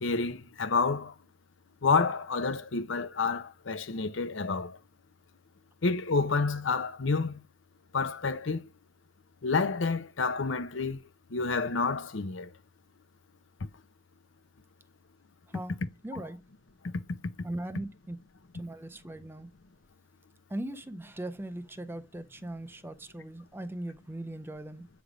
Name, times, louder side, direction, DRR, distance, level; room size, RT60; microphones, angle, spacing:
voice 1, 0.0-1.1 1.8-4.8 5.8-7.4 7.9-8.7 9.4-11.0 11.3-12.5 16.1-16.2 17.1-17.2, left 4 dB, 70° left, 0.7 m, -29 dB
voice 2, 16.0-16.4 17.4-18.2 18.5-19.5 20.5-24.9, right 1 dB, 10° right, 0.5 m, -39 dB
8.0 x 3.5 x 4.9 m
head